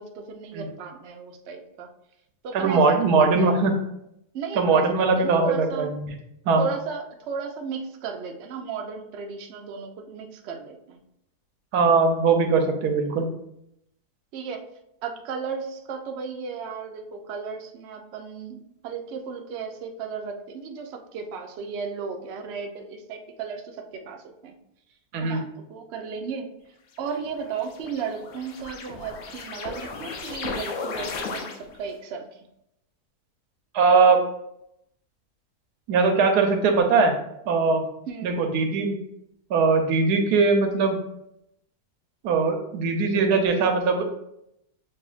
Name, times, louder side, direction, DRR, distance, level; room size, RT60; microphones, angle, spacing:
voice 1, 0.0-1.9 2.4-3.5 4.3-4.8 5.2-5.9 6.6-11.0 14.3-14.6 15.0-24.6 25.2-26.5 27.0-32.5 38.1-38.3, right 5 dB, 65° right, 3 dB, 0.7 m, -35 dB
voice 2, 2.5-3.7 4.5-6.1 6.5-6.6 11.7-13.3 25.1-25.4 33.7-34.2 35.9-37.1 37.5-37.8 38.2-39.0 39.5-41.0 42.2-44.0, right 4 dB, 90° right, 4 dB, 1.2 m, -20 dB
sound 1, 27.0-31.9, left 4 dB, 65° left, 0.9 m, -36 dB
6.4 x 2.7 x 2.4 m, 0.79 s
omnidirectional pair, 1.7 m